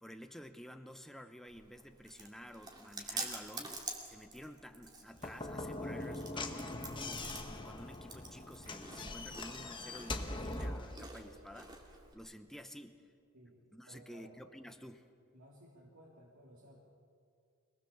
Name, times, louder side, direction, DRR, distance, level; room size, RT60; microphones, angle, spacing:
voice 1, 0.0-11.8 12.1-13.0 13.7-15.1, equal, ahead, 7 dB, 0.9 m, -51 dB
Chewing mastication, 1.5-12.1, right 3 dB, 20° right, 2.5 m, -48 dB
Slam / Knock, 5.1-11.0, left 2 dB, 20° left, 1.2 m, -42 dB
voice 2, 13.9-14.4 15.3-16.8, equal, 70° right, -5 dB, 3.7 m, -57 dB
25.0 x 19.5 x 7.3 m, 2.3 s
head